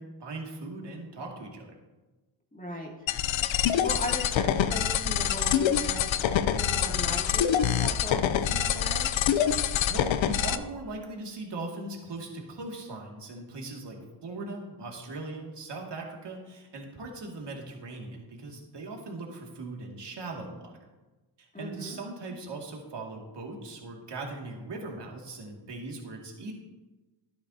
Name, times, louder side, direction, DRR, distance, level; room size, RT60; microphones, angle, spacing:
voice 1, 0.0-1.8 9.7-20.9 21.4-26.5, right 2 dB, 55° right, 0 dB, 2.4 m, -39 dB
voice 2, 2.5-2.9 3.6-6.1 6.5-9.2 21.5-22.0, equal, 15° left, -1 dB, 2.6 m, -38 dB
sound 1, 3.1-10.6, left 9 dB, 70° left, 0.7 m, -26 dB
12.5 x 9.6 x 2.8 m, 1.1 s
supercardioid pair, 50°, 49 cm